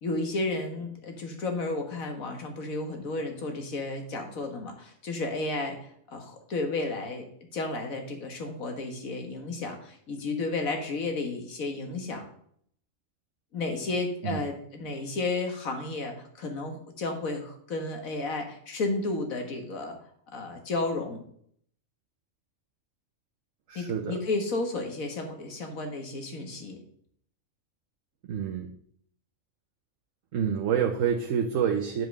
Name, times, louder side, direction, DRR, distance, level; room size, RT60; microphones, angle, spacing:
voice 1, 0.0-7.3 7.5-12.2 13.5-20.0 20.3-21.2 23.8-26.8, left 2 dB, 80° left, 4 dB, 1.9 m, -32 dB
voice 2, 23.7-24.2 28.3-28.7 30.3-32.1, right 7 dB, 70° right, 3 dB, 1.2 m, -27 dB
7.6 x 5.3 x 6.1 m, 0.65 s
omnidirectional pair, 1.4 m